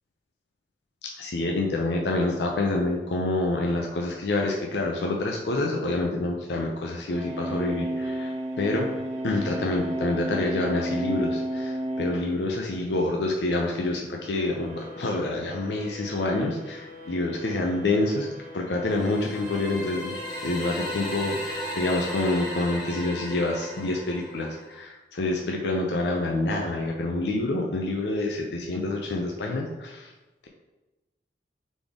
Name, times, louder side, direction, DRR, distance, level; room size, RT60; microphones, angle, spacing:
voice 1, 1.0-8.9 9.2-18.3 18.5-20.1 20.4-30.1, left 2 dB, 75° left, 0 dB, 0.5 m, -27 dB
sound 1, 7.1-12.3 14.1-22.1, right 1 dB, 40° right, 1.1 m, -35 dB
sound 2, 18.9-24.8, left 1 dB, 25° left, 0.9 m, -36 dB
4.1 x 3.4 x 3.6 m, 1.1 s
head